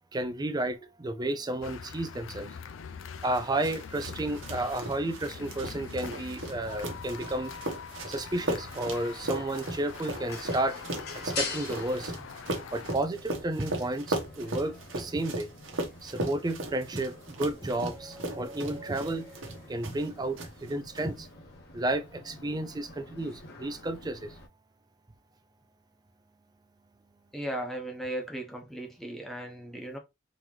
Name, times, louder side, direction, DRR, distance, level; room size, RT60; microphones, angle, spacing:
voice 1, 0.1-2.5 3.2-7.5 8.1-10.8 11.2-12.1 12.7-15.5 16.0-21.3 21.7-24.3, right 1 dB, 20° right, 0.5 m, -32 dB
sound 1, 1.6-13.0, left 6 dB, 70° left, 0.4 m, -44 dB
sound 2, 3.3-20.1 20.4-21.0, right 1 dB, 70° right, 1.1 m, -37 dB
sound 3, 6.4-24.5, left 3 dB, 55° left, 1.2 m, -45 dB
voice 2, 27.3-30.0, right 1 dB, ahead, 0.9 m, -36 dB
3.8 x 3.0 x 2.9 m
head